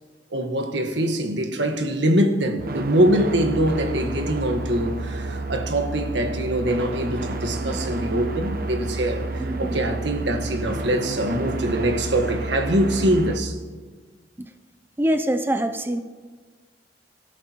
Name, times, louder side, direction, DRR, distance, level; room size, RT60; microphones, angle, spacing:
voice 1, 0.3-13.6, right 1 dB, 75° right, 1.5 m, -23 dB
sound 1, 2.6-13.4, right 2 dB, 55° right, 0.9 m, -30 dB
voice 2, 9.4-9.8 14.4-14.5 15.0-16.0, right 1 dB, 10° right, 0.5 m, -25 dB
25.0 x 12.5 x 3.0 m
head